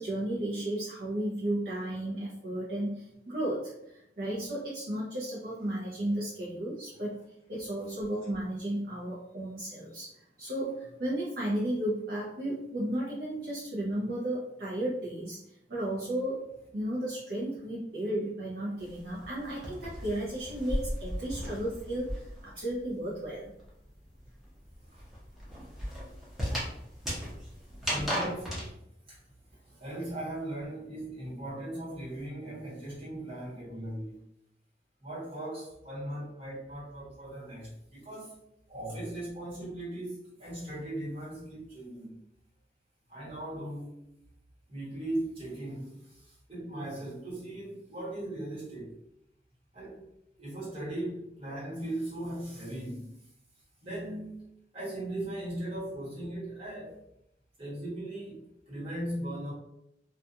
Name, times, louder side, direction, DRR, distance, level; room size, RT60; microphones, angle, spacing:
voice 1, 0.0-16.4 16.7-23.5, right 1 dB, 55° right, -6 dB, 0.6 m, -34 dB
sound 1, 18.8-22.5 22.8-28.7, equal, ahead, 0.7 m, -36 dB
voice 2, 27.8-28.7 29.1-29.2 29.8-34.2 35.0-38.4 38.7-42.2 43.1-44.0 44.7-49.0 49.7-50.1 50.4-53.1 53.8-54.4 54.7-57.0 57.6-58.4 58.7-59.5, right 1 dB, 35° right, -8 dB, 1.3 m, -38 dB
2.3 x 2.3 x 2.7 m, 0.79 s
head